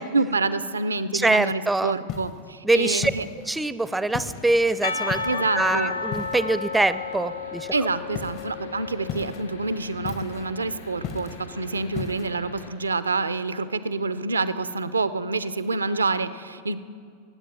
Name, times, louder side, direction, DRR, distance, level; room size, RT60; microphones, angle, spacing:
voice 1, 0.0-3.3 5.2-5.9 7.7-16.8, right 3 dB, 75° right, 14 dB, 0.6 m, -27 dB
voice 2, 1.1-2.0 2.6-3.1 3.4-7.7, right 2 dB, 5° right, 15 dB, 0.5 m, -24 dB
sound 1, 2.1-2.5 3.0-3.6 4.1-4.5 5.1-5.5 6.1-6.6 8.1-8.5 9.1-9.5 10.0-10.5 11.0-11.5 11.9-12.3, left 7 dB, 40° left, 0.9 m, -35 dB
sound 2, 4.1-12.7, left 4 dB, 60° left, 3.3 m, -45 dB
Percussion / Church bell, 4.8-10.1, left 4 dB, 80° left, 0.6 m, -32 dB
16.5 x 8.6 x 8.4 m, 2.2 s
figure-of-eight pair, 90°, 0 cm